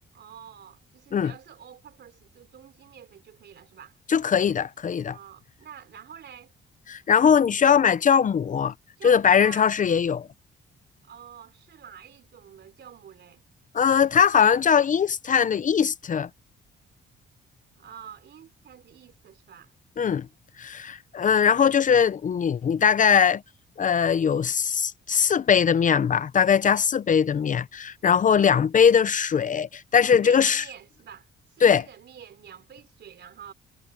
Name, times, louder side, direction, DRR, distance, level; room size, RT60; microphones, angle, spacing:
voice 1, 0.1-4.0 5.1-6.5 9.0-9.7 11.0-13.4 17.8-19.7 28.3-28.6 30.1-33.5, right 9 dB, 60° right, 3.4 m, -47 dB
voice 2, 4.1-5.2 6.9-8.7 9.0-10.3 13.7-16.3 20.0-20.3 20.6-23.4 23.8-30.6 31.6-31.8, left 7 dB, 40° left, 0.6 m, -21 dB
cardioid pair, 90°, 20 cm